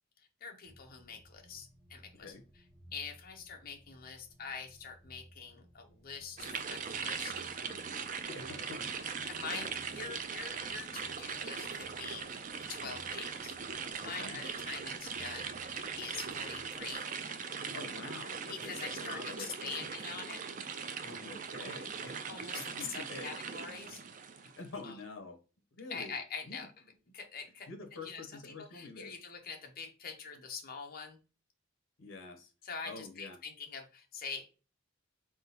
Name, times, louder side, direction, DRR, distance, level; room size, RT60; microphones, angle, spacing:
voice 1, 0.4-2.3 2.9-7.3 9.0-12.3 12.7-17.1 18.5-20.4 22.3-24.0 24.8-24.9 25.9-26.7 27.1-27.7 28.0-31.2 32.6-34.5, left 5 dB, 45° left, 0.8 m, -44 dB
sound 1, 0.6-16.9, equal, 10° left, 1.1 m, -60 dB
voice 2, 2.1-2.4 8.3-9.7 13.1-13.2 14.0-14.4 17.7-19.9 21.0-22.2 22.5-23.3 24.3-25.4 25.7-26.2 26.5-26.6 27.7-29.2 32.0-32.5 32.8-33.4, left 3 dB, 70° left, 0.9 m, -47 dB
sound 2, 6.4-24.7, right 6 dB, 40° right, 0.4 m, -40 dB
3.7 x 3.6 x 2.9 m
head